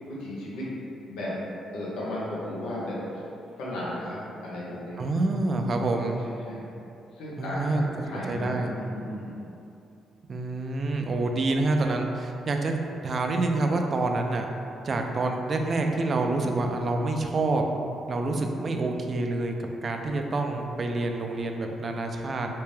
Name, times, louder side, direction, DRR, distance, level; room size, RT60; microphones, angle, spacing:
voice 1, 0.1-0.7 1.1-1.3 1.7-3.0 3.6-5.0 6.0-6.7 7.2-9.3 22.4-22.5, left 1 dB, 90° left, -7 dB, 1.0 m, -35 dB
voice 2, 5.0-6.2 7.4-7.9 8.3-8.7 10.3-12.7 13.0-14.5 14.8-17.6 18.1-19.5 19.8-22.5, right 2 dB, 45° right, 3 dB, 0.4 m, -27 dB
3.4 x 2.8 x 3.1 m, 2.7 s
cardioid pair, 90°, 0 cm